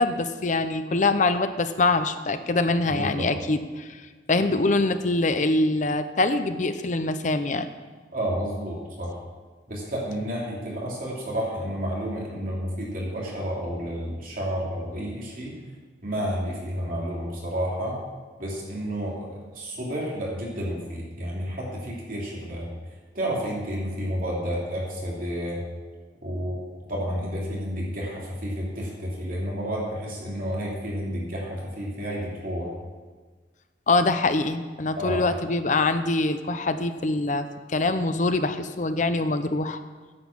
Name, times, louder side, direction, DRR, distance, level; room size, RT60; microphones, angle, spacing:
voice 1, 0.0-3.9 4.3-7.7 33.9-39.8, left 2 dB, 45° left, 10 dB, 0.7 m, -24 dB
voice 2, 2.9-3.3 8.1-9.1 9.7-15.6 16.0-18.0 18.4-22.7 23.1-25.6 26.2-26.6 26.9-32.7 34.9-35.2, equal, 50° right, -4 dB, 3.0 m, -30 dB
9.9 x 8.3 x 7.2 m, 1.4 s
head